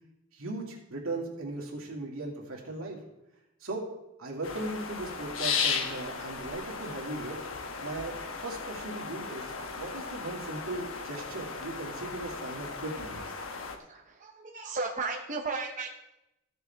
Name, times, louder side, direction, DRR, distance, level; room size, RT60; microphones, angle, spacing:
voice 1, 0.3-3.0 3.6-3.9 4.2-7.4 7.8-13.2, right 2 dB, 80° right, -1 dB, 2.4 m, -38 dB
sound 1, 4.4-13.8, left 5 dB, 70° left, 1.1 m, -36 dB
voice 2, 13.9-15.9, right 3 dB, 35° right, 1 dB, 0.9 m, -34 dB
15.0 x 6.7 x 3.5 m, 0.91 s
head